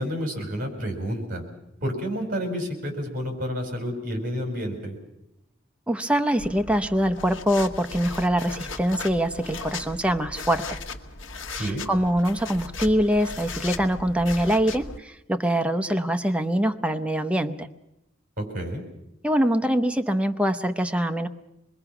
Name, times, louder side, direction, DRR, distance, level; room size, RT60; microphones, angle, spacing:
voice 1, 0.0-1.4 1.8-5.0 11.5-11.8 18.4-18.8, equal, 45° right, 4 dB, 5.1 m, -30 dB
voice 2, 5.9-10.8 11.6-17.7 19.2-21.3, equal, 5° right, 7 dB, 0.7 m, -24 dB
sound 1, 6.4-15.0, left 3 dB, 75° left, 1.3 m, -37 dB
25.5 x 21.5 x 5.9 m, 0.87 s
head